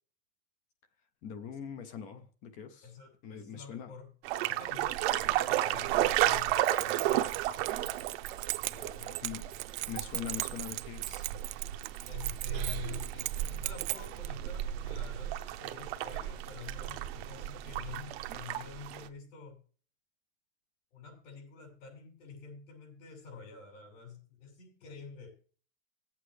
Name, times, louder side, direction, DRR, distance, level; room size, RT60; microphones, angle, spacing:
voice 1, 1.2-2.9 3.2-3.9 9.2-9.4 9.9-11.3, left 8 dB, 20° left, 0.4 m, -42 dB
voice 2, 2.8-4.1 4.4-7.3 8.7-9.2 12.0-19.6 20.9-25.3, left 6 dB, 70° left, 5.9 m, -48 dB
sound 1, 4.2-19.1, right 13 dB, 50° right, 0.8 m, -33 dB
Keys jangling, 6.4-14.3, right 20 dB, 80° right, 0.5 m, -39 dB
18.0 x 8.2 x 3.2 m
supercardioid pair, 180°, 40 cm